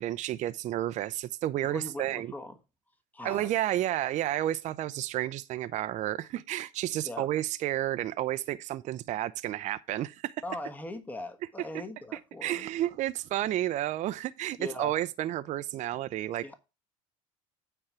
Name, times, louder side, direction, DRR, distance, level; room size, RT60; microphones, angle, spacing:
voice 1, 0.0-2.3 3.2-10.3 12.4-16.5, right 13 dB, 45° right, 0.5 m, -31 dB
voice 2, 1.6-2.6 3.1-3.5 7.0-7.3 10.4-12.7 14.6-14.9 16.4-16.5, left 2 dB, 10° left, 1.3 m, -40 dB
8.9 x 4.5 x 5.6 m
supercardioid pair, 100°, 16 cm